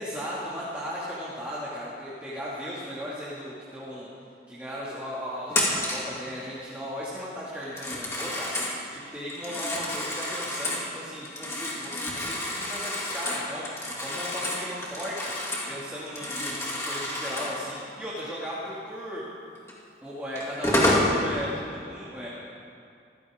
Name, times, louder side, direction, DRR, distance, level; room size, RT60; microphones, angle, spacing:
voice 1, 0.0-4.1 4.5-15.3 15.7-19.2 20.0-22.3, equal, 10° right, -8 dB, 2.1 m, -36 dB
Telephone, 5.5-6.1 7.6-8.8 9.3-10.9 11.2-15.7 16.0-17.6 19.7-19.8 20.3-21.1, left 1 dB, 15° left, 2.4 m, -29 dB
25.0 x 15.5 x 3.6 m, 2.5 s
head